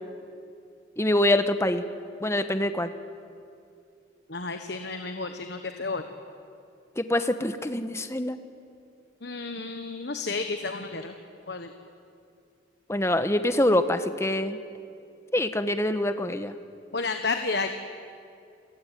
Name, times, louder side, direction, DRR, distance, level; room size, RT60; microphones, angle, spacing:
voice 1, 1.0-1.8 2.2-2.9 7.0-8.4 12.9-14.6 15.3-16.5, left 1 dB, 15° left, 9 dB, 1.1 m, -25 dB
voice 2, 4.3-6.0 9.2-11.2 11.5-11.7 16.9-17.7, left 3 dB, 60° left, 6 dB, 1.3 m, -31 dB
28.5 x 21.5 x 9.3 m, 2.5 s
head